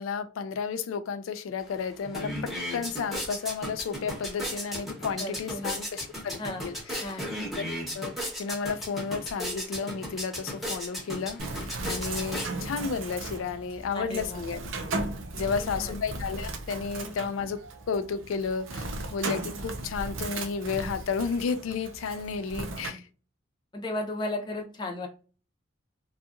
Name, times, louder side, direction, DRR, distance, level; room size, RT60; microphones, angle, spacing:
voice 1, 0.0-7.3 7.9-14.6 15.3-17.6 17.9-23.0, left 5 dB, 90° left, 0.4 m, -32 dB
sound 1, 1.6-1.7 2.0-12.9, equal, ahead, 0.9 m, -36 dB
voice 2, 5.2-5.8 6.4-6.6 7.0-7.3 13.9-14.4 15.4-15.7 17.0-17.2 22.5-23.0 23.7-25.1, left 1 dB, 25° left, 0.6 m, -35 dB
Bird, 11.4-22.9, right 2 dB, 75° right, 0.5 m, -36 dB
2.7 x 2.4 x 2.4 m
head